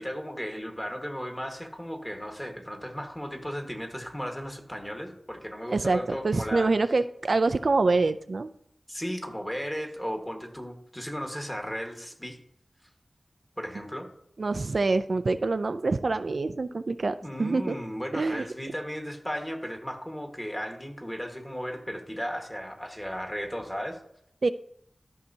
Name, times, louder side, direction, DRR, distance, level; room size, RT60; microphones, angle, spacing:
voice 1, 0.0-6.7 8.9-12.4 13.6-14.1 17.2-24.0, equal, 10° left, 3 dB, 1.4 m, -35 dB
voice 2, 5.7-8.5 14.4-17.8 18.1-18.4 24.4-24.5, right 3 dB, 70° right, 10 dB, 0.3 m, -26 dB
13.0 x 5.6 x 2.7 m, 0.69 s
wide cardioid pair, 60°, 0 cm